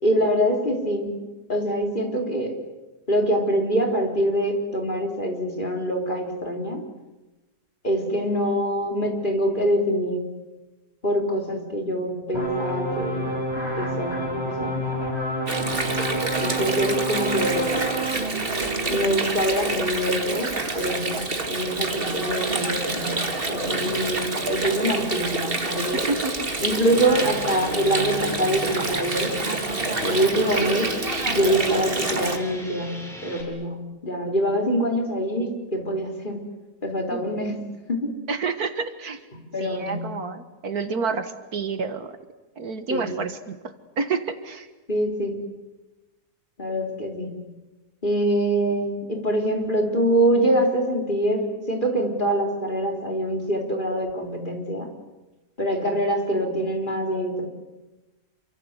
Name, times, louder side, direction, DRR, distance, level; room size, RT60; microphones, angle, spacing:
voice 1, 0.0-1.1 1.5-2.5 3.1-6.8 7.8-10.3 11.0-13.3 13.7-14.8 16.4-17.7 18.9-26.0 26.6-29.4 30.0-30.9 31.3-36.5 36.8-38.1 39.3-40.2 42.9-43.2 44.9-45.4 46.6-47.5 48.0-54.9 55.6-57.5, right 1 dB, 30° left, 2 dB, 4.0 m, -25 dB
sound 1, 12.3-18.2, right 1 dB, 15° right, 5.4 m, -28 dB
Water, 15.5-32.4, right 3 dB, 35° right, 2.4 m, -27 dB
voice 2, 25.9-26.5 37.1-37.2 38.3-39.2 39.6-42.1 42.6-43.6 44.0-44.7, right 4 dB, 65° right, 10 dB, 1.9 m, -29 dB
sound 2, 26.9-33.4, equal, ahead, 6.1 m, -39 dB
28.0 x 25.0 x 8.1 m, 1.1 s
omnidirectional pair, 1.8 m